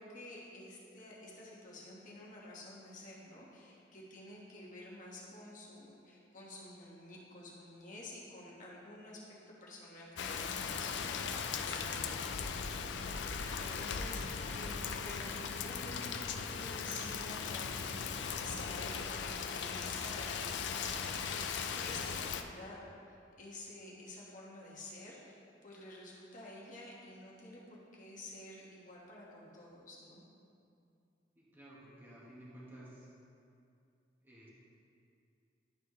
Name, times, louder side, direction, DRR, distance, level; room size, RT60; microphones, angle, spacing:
voice 1, 0.0-20.9 21.8-22.8 23.1-30.2, left 2 dB, 45° left, -5 dB, 1.4 m, -50 dB
Rain, 10.2-22.4, left 6 dB, 75° left, 0.4 m, -38 dB
voice 2, 31.3-33.1 34.2-34.5, right 1 dB, 10° right, -7 dB, 1.2 m, -54 dB
11.0 x 4.3 x 3.1 m, 2.5 s
head